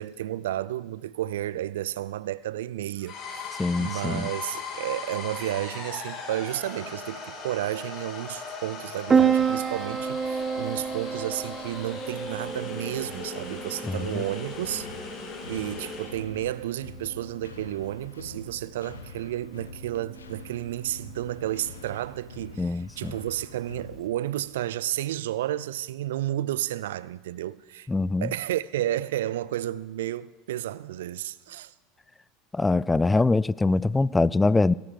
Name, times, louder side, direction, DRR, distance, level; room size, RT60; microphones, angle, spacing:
voice 1, 0.0-14.9 15.5-27.9 28.2-31.7, right 13 dB, 75° right, 0.4 m, -32 dB
sound 1, 3.0-16.2, left 4 dB, 45° left, 2.6 m, -38 dB
voice 2, 3.6-4.3 13.8-14.2 22.6-23.1 27.9-28.3 32.5-34.7, left 3 dB, 15° left, 0.3 m, -23 dB
Piano, 9.1-24.1, right 6 dB, 25° right, 0.6 m, -31 dB
sound 2, 14.0-24.7, left 3 dB, 85° left, 0.8 m, -46 dB
17.0 x 6.6 x 6.6 m
hypercardioid pair, 80°, 0 cm